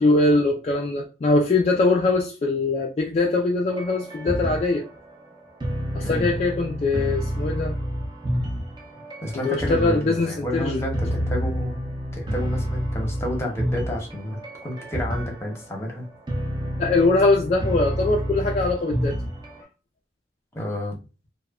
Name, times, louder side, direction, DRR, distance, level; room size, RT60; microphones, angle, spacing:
voice 1, 0.0-4.8 5.9-7.8 9.4-10.9 16.8-19.2, left 2 dB, 35° left, 0.3 m, -22 dB
sound 1, 3.7-19.6, equal, 25° right, 0.5 m, -30 dB
voice 2, 9.2-11.8 12.1-16.1 20.5-21.0, equal, 15° left, 0.8 m, -30 dB
2.9 x 2.1 x 2.3 m
head